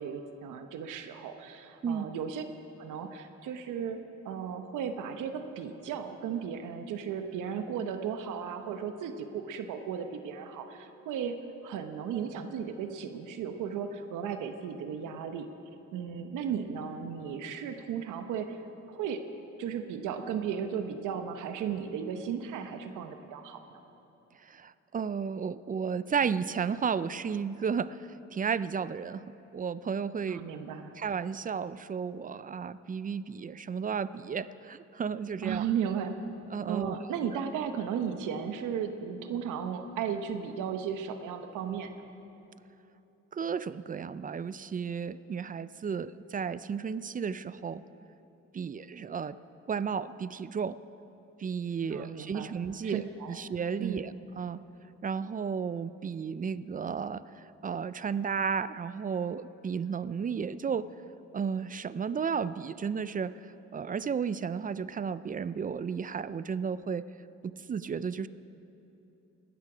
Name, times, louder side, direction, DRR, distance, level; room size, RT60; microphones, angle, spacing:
voice 1, 0.0-2.5 2.8-4.0 4.2-11.3 11.6-15.5 15.9-18.6 18.9-19.2 19.6-23.8 30.3-30.9 35.4-36.2 36.7-41.9 51.9-52.6 52.8-53.4 53.8-54.1, right 7 dB, 85° right, 7 dB, 1.0 m, -35 dB
voice 2, 24.5-28.0 28.3-29.2 29.5-30.4 31.0-35.6 36.5-37.0 43.3-47.8 48.5-49.4 49.7-50.8 51.4-53.0 53.3-54.1 54.4-54.6 55.0-57.2 57.6-60.9 61.3-63.4 63.7-67.1 67.4-68.3, right 6 dB, 30° right, 16 dB, 0.4 m, -33 dB
18.5 x 13.0 x 5.0 m, 3.0 s
cardioid pair, 90°, 30 cm